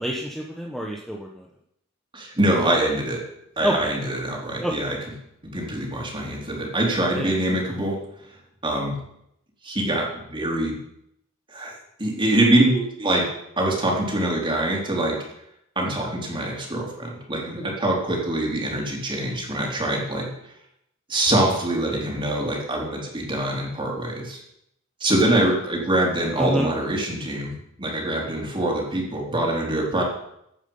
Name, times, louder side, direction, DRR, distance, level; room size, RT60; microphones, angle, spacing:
voice 1, 0.0-1.4 3.6-3.9 4.6-4.7 7.2-7.3 26.4-26.7, right 1 dB, ahead, -1 dB, 1.2 m, -27 dB
voice 2, 2.1-3.2 3.6-5.0 5.4-8.0 8.6-9.0 9.6-10.8 11.5-11.7 12.0-13.2 13.6-15.2 15.8-20.3 21.1-24.4 25.0-30.0, right 1 dB, 25° right, -2 dB, 3.8 m, -24 dB
15.5 x 9.3 x 5.6 m, 0.78 s
head